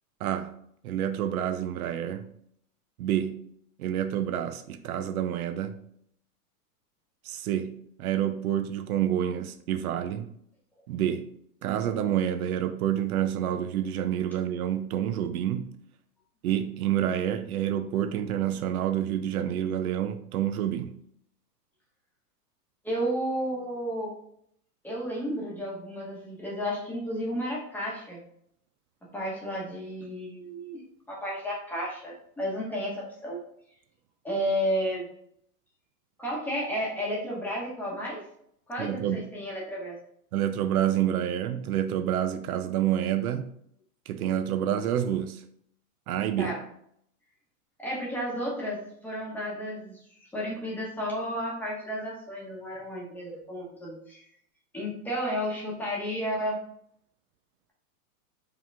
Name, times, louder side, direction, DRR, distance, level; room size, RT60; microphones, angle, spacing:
voice 1, 0.2-0.6 0.8-2.3 3.0-3.5 3.8-5.8 7.2-10.3 10.9-11.3 11.6-15.7 16.4-20.9 38.8-39.3 40.3-43.5 44.1-45.4 46.1-46.6, right 10 dB, 65° right, 0.5 m, -28 dB
voice 2, 22.8-24.1 24.8-28.2 29.1-30.8 31.1-33.4 34.2-35.1 36.2-38.2 38.7-40.0 46.4-46.6 47.8-50.0 50.3-54.2 54.7-56.6, equal, 5° left, 1.0 m, -32 dB
5.0 x 2.9 x 3.4 m
supercardioid pair, 145°, 47 cm